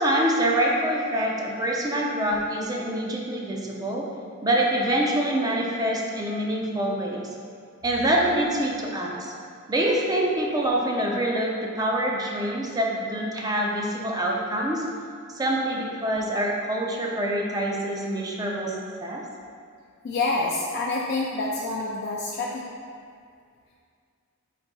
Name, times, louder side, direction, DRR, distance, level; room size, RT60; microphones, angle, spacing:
voice 1, 0.0-4.1 4.4-7.3 7.8-9.3 9.7-14.8 15.3-19.2, right 1 dB, 20° right, -1 dB, 0.4 m, -25 dB
voice 2, 20.0-22.7, left 3 dB, 50° left, -3 dB, 0.4 m, -27 dB
4.0 x 2.6 x 4.6 m, 2.2 s
head